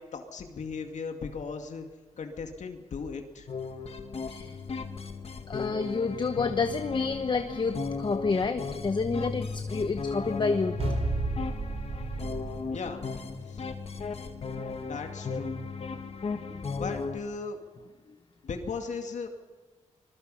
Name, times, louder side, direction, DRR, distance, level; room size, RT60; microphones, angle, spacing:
voice 1, 0.0-1.9 2.2-3.5 12.7-13.1 13.5-13.6 14.8-15.6 16.7-17.6 18.4-19.3, left 5 dB, 75° left, 4 dB, 2.3 m, -37 dB
sound 1, 3.5-17.2, left 4 dB, 55° left, 2.0 m, -36 dB
voice 2, 5.5-10.8 16.5-16.6, left 4 dB, 40° left, 8 dB, 1.0 m, -29 dB
sound 2, 6.3-12.8, right 3 dB, 55° right, 3.6 m, -37 dB
26.0 x 21.0 x 5.7 m, 1.4 s
wide cardioid pair, 135°, 12 cm